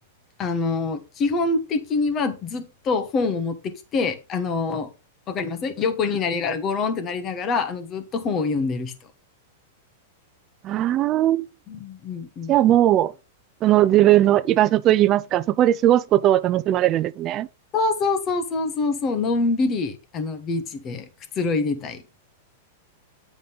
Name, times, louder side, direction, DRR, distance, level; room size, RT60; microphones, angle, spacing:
voice 1, 0.4-4.9 5.3-8.9 11.7-12.5 17.7-21.0 21.4-22.0, left 4 dB, 25° left, 1.2 m, -25 dB
voice 2, 10.6-11.5 12.5-13.1 13.6-17.5, right 13 dB, 25° right, 0.5 m, -18 dB
9.6 x 3.8 x 5.3 m
supercardioid pair, 160°, 0 cm